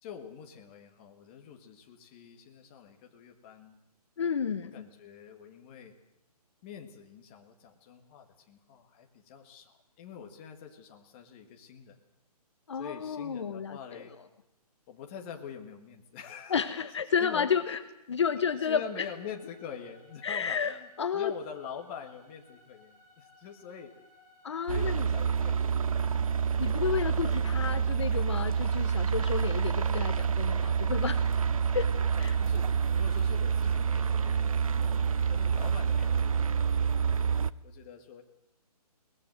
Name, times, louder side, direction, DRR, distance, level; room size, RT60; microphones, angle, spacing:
voice 1, 0.0-3.8 4.7-5.9 6.6-12.0 12.7-14.1 14.9-16.6 17.2-17.8 18.6-23.9 24.7-25.6 25.9-26.4 27.0-27.7 32.1-35.0 35.3-37.3 37.6-38.2, left 7 dB, 15° left, 3 dB, 1.6 m, -46 dB
voice 2, 4.2-4.7 12.7-14.0 16.5-17.8 18.1-19.1 20.2-21.3 24.4-25.1 26.6-31.2 31.7-31.9 32.2-32.4, left 7 dB, 45° left, 10 dB, 1.1 m, -31 dB
sound 1, 18.3-36.5, left 2 dB, 15° right, 5.4 m, -60 dB
sound 2, 24.7-37.5, right 6 dB, 60° right, 0.8 m, -27 dB
22.5 x 19.5 x 7.9 m, 0.89 s
hypercardioid pair, 170°, 20 cm